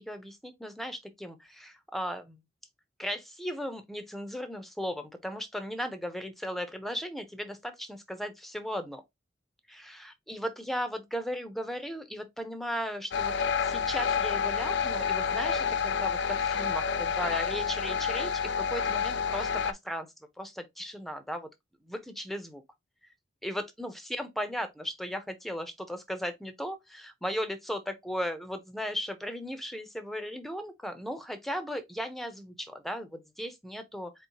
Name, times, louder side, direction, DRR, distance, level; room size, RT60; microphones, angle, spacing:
voice 1, 0.0-2.4 3.0-9.0 9.7-20.1 20.4-21.5 21.9-22.6 23.4-34.3, equal, ahead, 0.7 m, -36 dB
sound 1, 13.1-19.7, left 6 dB, 70° left, 0.4 m, -29 dB
4.2 x 4.2 x 3.0 m
head